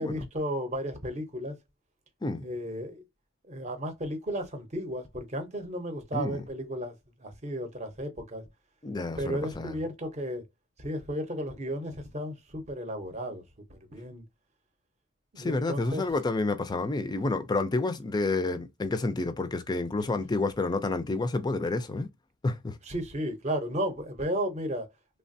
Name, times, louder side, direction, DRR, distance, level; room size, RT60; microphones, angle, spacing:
voice 1, 0.0-1.6 2.4-3.0 3.5-6.9 7.2-8.5 9.2-10.5 10.8-13.4 13.7-14.2 15.3-16.0 22.8-24.9, equal, 30° right, 0.7 m, -34 dB
voice 2, 6.1-6.4 8.8-9.8 15.4-22.1 22.4-22.8, left 3 dB, 20° left, 0.3 m, -29 dB
3.2 x 2.1 x 2.6 m
head